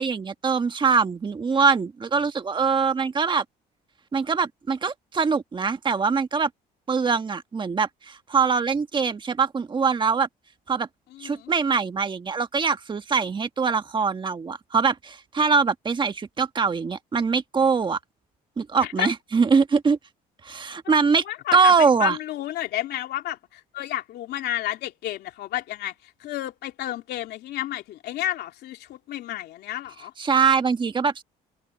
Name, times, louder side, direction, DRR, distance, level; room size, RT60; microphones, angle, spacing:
voice 1, 0.0-3.4 4.1-6.5 6.9-10.3 10.7-10.9 11.2-18.0 18.6-20.0 20.4-21.2 21.5-22.2 30.2-31.2, right 5 dB, 30° right, 1.5 m, -23 dB
voice 2, 11.1-11.5 18.8-19.1 21.3-30.1, left 13 dB, 75° left, 3.0 m, -31 dB
cardioid pair, 110°, 17 cm